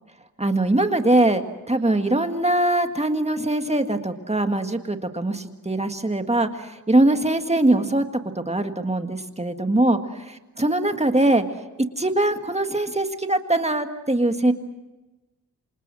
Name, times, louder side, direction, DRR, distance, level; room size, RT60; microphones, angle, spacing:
voice 1, 0.4-8.1 8.4-10.0 10.3-11.4 11.8-14.5, right 1 dB, 15° right, 6 dB, 1.8 m, -22 dB
28.0 x 26.5 x 6.3 m, 1.1 s
wide cardioid pair, 105°, 37 cm